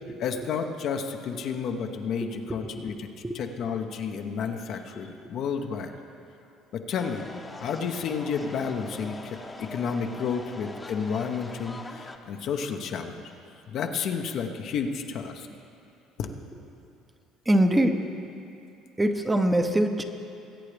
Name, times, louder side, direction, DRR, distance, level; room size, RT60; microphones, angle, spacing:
voice 1, 0.2-3.1 3.3-5.9 6.7-7.3 7.6-13.2 13.7-15.5 16.2-16.3, left 6 dB, 60° left, 5 dB, 0.9 m, -31 dB
voice 2, 2.2-2.9 3.2-3.4 17.5-18.1 19.0-20.0, right 1 dB, 15° right, 6 dB, 0.8 m, -24 dB
sound 1, 7.0-12.2, left 2 dB, 20° left, 0.9 m, -42 dB
21.0 x 8.5 x 3.4 m, 2.7 s
supercardioid pair, 75°, 0 cm